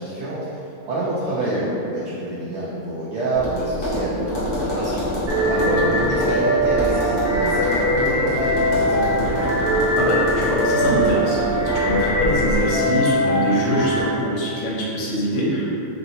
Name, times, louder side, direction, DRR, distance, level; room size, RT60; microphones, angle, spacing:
voice 1, 0.0-5.1 5.5-5.8 6.1-9.5, right 2 dB, 70° right, -8 dB, 0.7 m, -27 dB
Tap, 3.3-12.6, equal, 25° left, 0.7 m, -27 dB
sound 1, 5.3-14.0, equal, 35° right, 0.7 m, -21 dB
voice 2, 5.8-6.2 9.9-15.7, equal, 70° left, -5 dB, 1.0 m, -24 dB
2.9 x 2.7 x 2.6 m, 2.9 s
omnidirectional pair, 1.6 m